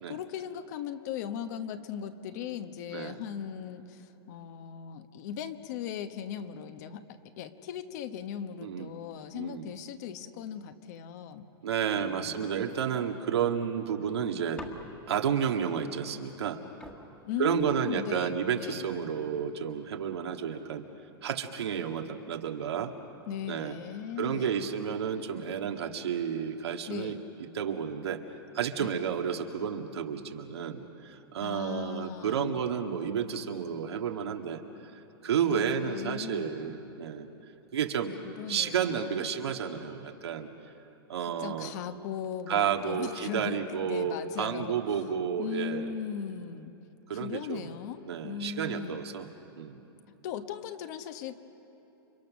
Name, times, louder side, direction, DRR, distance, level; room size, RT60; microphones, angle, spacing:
voice 1, 0.1-11.5 11.9-12.7 17.2-18.8 23.3-24.7 26.9-27.2 28.8-28.9 31.4-32.6 35.5-36.8 38.2-39.3 41.4-45.0 45.4-46.7 47.1-49.0 50.2-51.4, left 8 dB, 40° left, 9 dB, 1.2 m, -38 dB
voice 2, 8.6-8.9 9.3-9.7 11.6-14.6 15.1-16.6 17.4-20.9 21.2-22.9 23.5-23.8 24.2-27.2 27.5-28.2 28.5-37.3 37.7-38.1 38.5-40.5 41.1-41.7 42.5-45.9 47.1-47.7 48.1-49.3 49.6-49.8, right 8 dB, 90° right, 3 dB, 2.0 m, -31 dB
sound 1, 14.6-15.3 16.4-16.5 16.8-18.3 19.0-19.5, left 1 dB, 10° left, 1.7 m, -48 dB
30.0 x 25.0 x 6.4 m, 2.9 s
hypercardioid pair, 160°, 13 cm